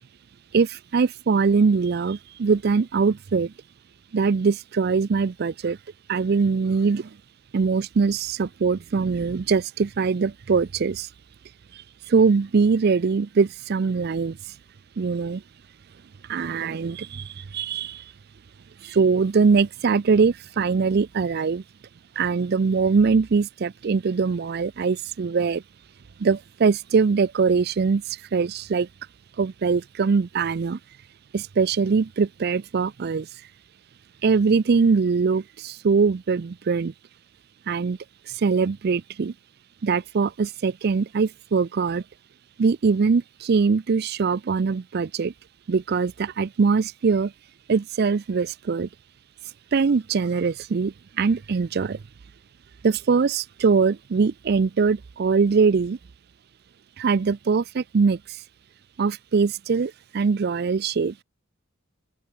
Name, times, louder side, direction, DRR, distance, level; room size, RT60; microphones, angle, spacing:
voice 1, 0.5-3.5 4.1-5.8 6.1-7.1 7.5-11.1 11.7-14.4 15.0-15.4 16.3-18.0 18.8-21.6 22.2-25.6 26.2-28.9 29.4-30.8 31.3-33.3 34.2-36.9 37.7-38.0 38.3-39.3 39.8-42.0 42.6-45.3 45.7-47.3 47.7-48.9 49.7-52.0 52.8-56.0 57.0-58.4 59.0-61.2, right 5 dB, 50° right, 0.4 m, -22 dB
open air
head